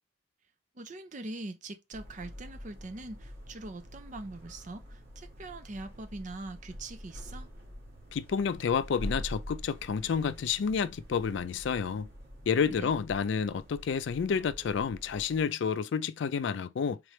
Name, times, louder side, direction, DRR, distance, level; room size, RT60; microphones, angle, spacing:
voice 1, 0.8-7.5 12.8-12.9, right 2 dB, 40° right, 0.6 m, -42 dB
sound 1, 1.9-15.4, equal, 55° right, 1.7 m, -45 dB
voice 2, 8.1-12.1 12.5-17.0, left 6 dB, 65° left, 0.3 m, -30 dB
3.8 x 3.2 x 3.1 m
head